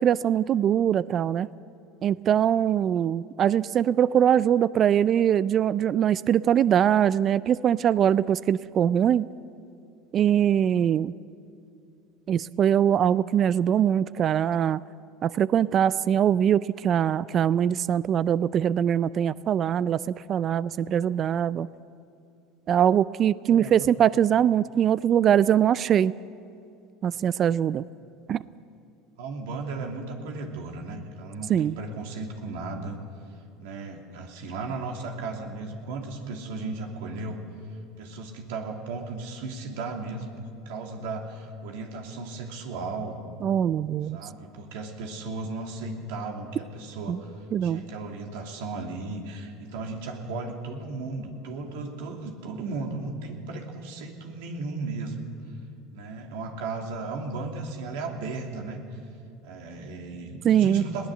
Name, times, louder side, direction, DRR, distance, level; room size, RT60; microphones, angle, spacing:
voice 1, 0.0-1.5 2.0-9.3 10.1-11.1 12.3-14.8 15.2-21.7 22.7-26.1 27.0-27.8 28.3-28.4 31.5-31.7 43.4-44.2 47.1-47.2 47.5-47.8 60.4-60.8, right 9 dB, 40° right, 18 dB, 0.4 m, -22 dB
voice 2, 23.5-23.9 28.0-28.2 29.2-33.0 33.6-37.4 38.0-43.2 44.1-47.3 47.6-55.3 55.9-58.8 59.4-61.1, right 3 dB, 75° right, 2 dB, 2.8 m, -35 dB
21.0 x 17.0 x 7.8 m, 2.5 s
supercardioid pair, 95°, 0 cm